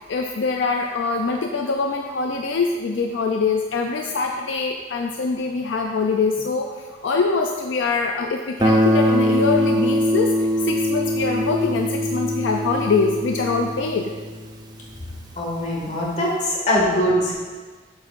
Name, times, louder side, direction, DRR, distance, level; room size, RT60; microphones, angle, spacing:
voice 1, 0.0-14.1, left 4 dB, 70° left, 2 dB, 0.4 m, -24 dB
Guitar, 8.6-15.3, equal, 20° right, 0.5 m, -22 dB
voice 2, 15.4-17.3, equal, 40° left, -4 dB, 1.8 m, -22 dB
7.9 x 7.2 x 2.5 m, 1.4 s
head